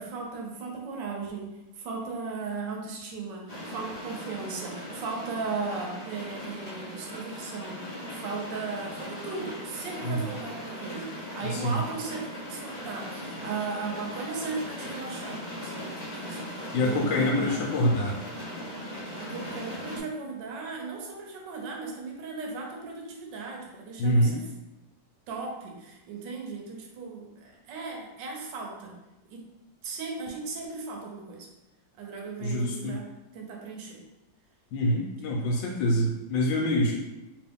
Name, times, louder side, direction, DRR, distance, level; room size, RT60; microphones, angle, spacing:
voice 1, 0.0-17.6 17.9-18.0 18.3-18.5 19.2-24.5 25.3-28.9 29.3-29.4 29.8-31.5 32.0-33.1 33.3-34.0, right 4 dB, 75° right, 0 dB, 1.3 m, -37 dB
sound 1, 3.5-20.0, equal, 60° left, 0.4 m, -39 dB
voice 2, 11.4-11.8 16.7-18.2 24.0-24.4 32.4-33.0 34.7-36.9, left 1 dB, 85° left, -1 dB, 1.3 m, -25 dB
3.0 x 2.9 x 3.5 m, 0.98 s
omnidirectional pair, 2.0 m